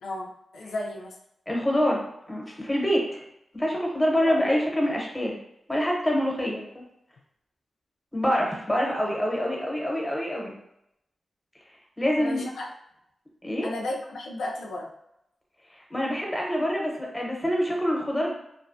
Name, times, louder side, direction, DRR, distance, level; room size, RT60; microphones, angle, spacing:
voice 1, 0.0-1.2 4.2-4.4 12.2-12.7 13.6-14.9, left 2 dB, 90° left, 0 dB, 0.3 m, -34 dB
voice 2, 1.5-3.2 3.5-5.4 5.7-6.8 8.1-10.6 12.0-12.4 13.4-13.7 15.9-18.3, equal, 10° left, -1 dB, 0.8 m, -26 dB
2.4 x 2.1 x 2.5 m, 0.81 s
cardioid pair, 65°, 0 cm